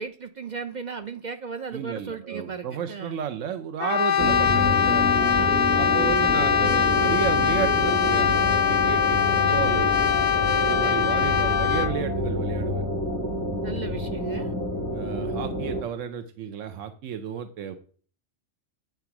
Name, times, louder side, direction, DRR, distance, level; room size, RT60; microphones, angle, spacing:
voice 1, 0.0-3.2 5.4-5.6 10.9-11.3 13.6-14.5, right 5 dB, 55° right, 0.5 m, -36 dB
voice 2, 1.7-5.1 5.7-9.9 10.6-12.9 14.9-17.8, right 8 dB, 85° right, 1.0 m, -33 dB
Brass instrument, 3.8-12.0, left 8 dB, 50° left, 0.6 m, -22 dB
sound 1, 4.2-15.8, equal, 15° right, 0.9 m, -28 dB
9.1 x 3.5 x 5.8 m
omnidirectional pair, 1.3 m